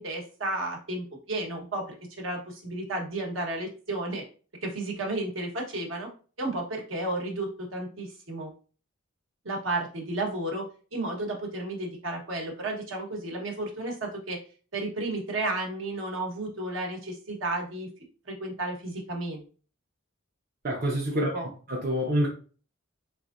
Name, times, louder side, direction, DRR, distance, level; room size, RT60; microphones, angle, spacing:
voice 1, 0.0-4.2 4.6-6.1 6.4-8.5 9.4-10.7 10.9-14.4 14.7-17.9 18.3-19.4 21.1-21.5, right 2 dB, 70° right, 1.1 m, -32 dB
voice 2, 20.6-22.3, equal, 45° right, 0.6 m, -27 dB
3.6 x 3.0 x 2.5 m
head